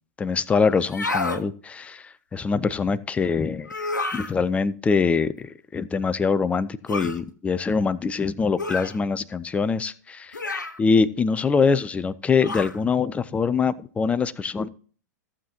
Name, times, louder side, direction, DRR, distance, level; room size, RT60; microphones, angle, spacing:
voice 1, 0.2-3.7 4.1-10.4 10.8-14.7, left 5 dB, 15° left, 16 dB, 0.5 m, -24 dB
sound 1, 0.8-1.4 3.7-4.3 6.9-7.2 8.6-9.0 10.3-10.8 12.4-12.8, left 3 dB, 85° left, 1.0 m, -29 dB
15.0 x 7.4 x 2.8 m, 0.43 s
figure-of-eight pair, 100°, 10 cm